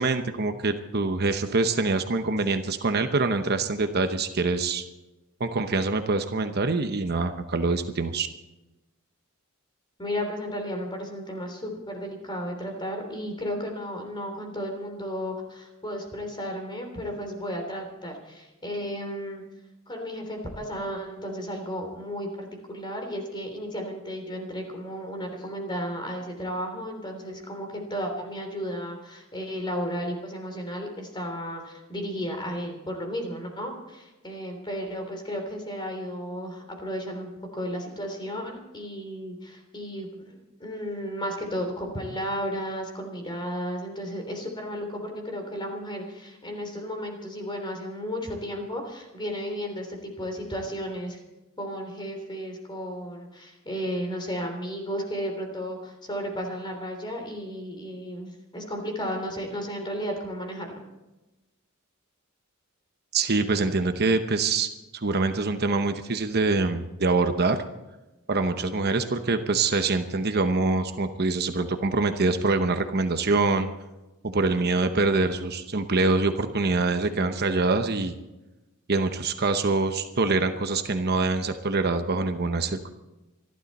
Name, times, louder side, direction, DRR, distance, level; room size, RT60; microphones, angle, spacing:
voice 1, 0.0-4.8 5.4-8.3 63.1-67.6 68.3-73.7 74.2-78.1 78.9-82.9, right 3 dB, 50° right, 8 dB, 0.9 m, -25 dB
voice 2, 10.0-19.4 19.9-51.2 51.6-60.8, equal, 20° left, 3 dB, 3.3 m, -34 dB
26.5 x 12.0 x 4.2 m, 1.0 s
head